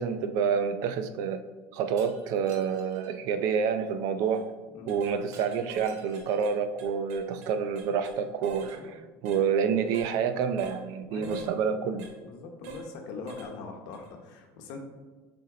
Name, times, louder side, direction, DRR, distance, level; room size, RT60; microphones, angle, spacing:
voice 1, 0.0-1.4 1.7-4.4 4.9-8.8 9.2-12.1, right 7 dB, 55° right, 9 dB, 0.5 m, -28 dB
Shatter, 2.0-3.1 5.3-6.6, right 4 dB, 40° right, 0.9 m, -53 dB
sound 1, 4.2-4.4 4.9-5.2 5.5-5.9 6.1-8.2 8.4-8.8 9.3-9.4 9.9-10.1 10.6-10.8 11.2-11.5 12.0-12.1 12.6-12.9 13.3-13.5 13.9-14.1, right 4 dB, 80° right, 1.0 m, -45 dB
voice 2, 4.7-5.0 8.6-8.9 11.0-11.5 12.2-14.8, left 4 dB, 60° left, 4 dB, 1.0 m, -42 dB
6.3 x 4.3 x 3.8 m, 1.3 s
cardioid pair, 155°, 7 cm